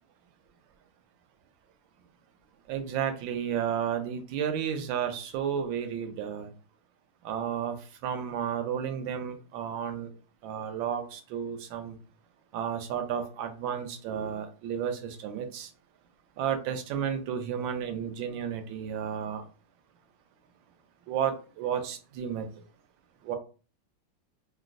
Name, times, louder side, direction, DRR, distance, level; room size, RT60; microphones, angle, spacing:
voice 1, 2.7-6.5 7.2-10.1 10.4-12.0 12.5-15.7 16.4-19.4 21.1-22.6 23.2-23.4, right 8 dB, 85° right, 7 dB, 1.3 m, -32 dB
3.9 x 2.2 x 2.5 m, 0.35 s
omnidirectional pair, 2.0 m